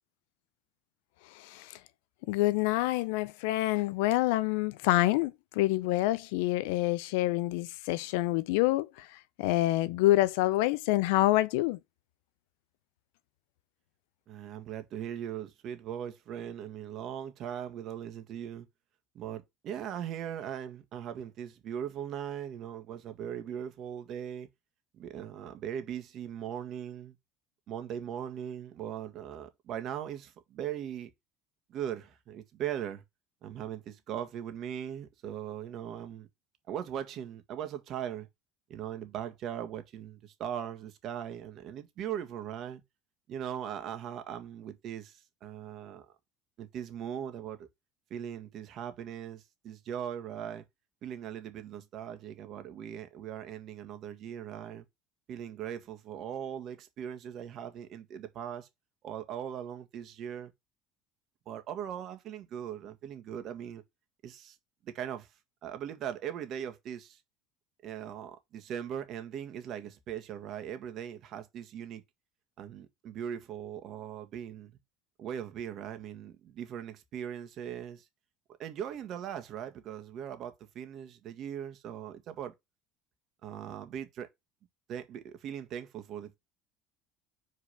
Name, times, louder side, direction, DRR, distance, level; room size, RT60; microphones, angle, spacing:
voice 1, 2.3-8.9 9.4-11.8, left 17 dB, 75° left, 0.5 m, -27 dB
voice 2, 14.3-18.7 19.1-24.5 24.9-27.2 27.7-31.1 31.7-33.0 33.4-36.3 36.7-38.3 38.7-42.8 43.3-46.0 46.6-47.7 48.1-50.6 51.0-54.8 55.3-58.7 59.0-60.5 61.4-63.8 64.2-64.6 64.8-65.3 65.6-67.2 67.8-72.0 72.6-74.7 75.2-78.0 78.6-82.5 83.4-84.3 84.9-86.4, right 9 dB, 55° right, 1.7 m, -39 dB
5.1 x 4.7 x 5.8 m
hypercardioid pair, 80°, 0 cm